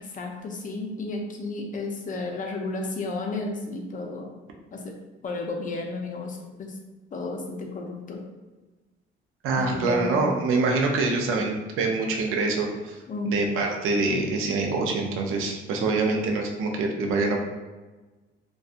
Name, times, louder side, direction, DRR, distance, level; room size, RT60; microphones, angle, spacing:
voice 1, 0.0-4.3 4.7-5.0 5.2-6.8 7.1-8.2 9.6-10.3 13.1-13.4, left 3 dB, 40° left, 2 dB, 0.5 m, -32 dB
voice 2, 9.4-13.0 13.3-17.4, right 3 dB, 85° right, 1 dB, 0.5 m, -25 dB
2.6 x 2.2 x 2.4 m, 1.2 s
cardioid pair, 115°, 21 cm